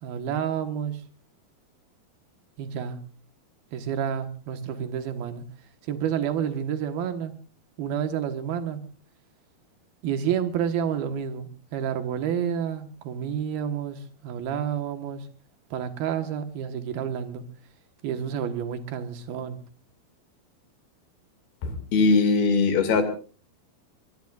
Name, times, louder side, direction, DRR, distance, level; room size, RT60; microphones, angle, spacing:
voice 1, 0.0-1.0 2.6-3.0 3.7-5.4 5.9-7.3 7.8-8.8 10.0-15.3 15.7-17.4 18.0-19.6, right 8 dB, 80° right, 8 dB, 3.3 m, -29 dB
voice 2, 21.6-23.0, left 4 dB, 80° left, 7 dB, 4.3 m, -21 dB
24.5 x 21.5 x 2.5 m, 0.37 s
omnidirectional pair, 4.3 m